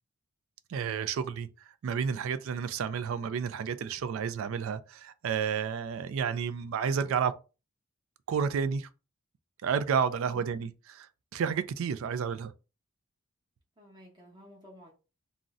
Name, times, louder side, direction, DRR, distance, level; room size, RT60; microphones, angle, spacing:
voice 1, 0.7-1.5 1.8-7.3 8.3-8.9 9.6-12.5, right 6 dB, 70° right, 0.3 m, -31 dB
voice 2, 13.8-14.9, equal, 20° right, 0.8 m, -53 dB
2.6 x 2.0 x 3.5 m
head